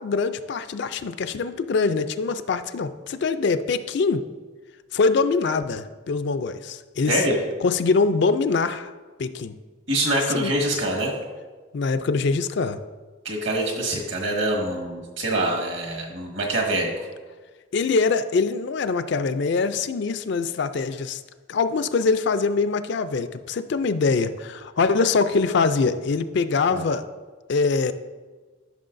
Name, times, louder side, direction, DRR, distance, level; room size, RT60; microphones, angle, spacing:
voice 1, 0.0-4.2 4.9-7.2 7.6-8.9 9.2-9.6 10.3-10.5 11.7-12.8 17.7-21.2 21.5-27.0 27.5-27.9, left 4 dB, 55° left, 11 dB, 0.4 m, -23 dB
voice 2, 9.9-11.1 13.2-16.9 26.7-26.9, right 1 dB, 65° right, 0 dB, 1.7 m, -25 dB
12.5 x 6.2 x 2.6 m, 1.4 s
head